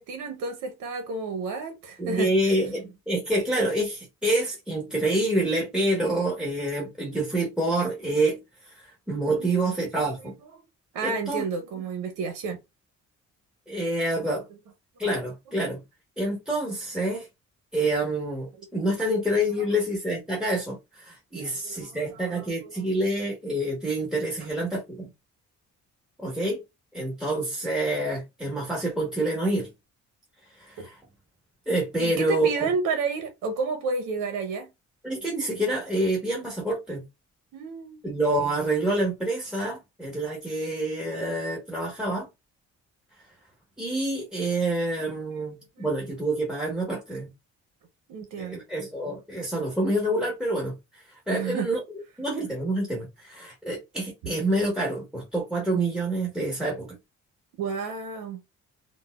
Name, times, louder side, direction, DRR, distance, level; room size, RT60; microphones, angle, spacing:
voice 1, 0.0-2.3 9.4-9.5 10.9-12.6 21.3-22.5 30.8-30.9 32.0-34.7 37.5-38.0 45.0-45.1 48.1-48.6 51.3-51.7 57.6-58.4, right 4 dB, 85° right, 0.7 m, -31 dB
voice 2, 2.0-10.3 11.0-11.4 13.7-14.4 15.0-15.8 16.2-17.3 17.7-25.1 26.2-26.6 26.9-29.7 30.5-31.0 31.7-32.6 35.0-37.0 38.0-42.3 43.1-43.2 43.8-47.3 48.4-51.8 52.2-56.9, right 1 dB, ahead, 1.1 m, -27 dB
4.0 x 2.0 x 2.3 m
cardioid pair, 90°, 30 cm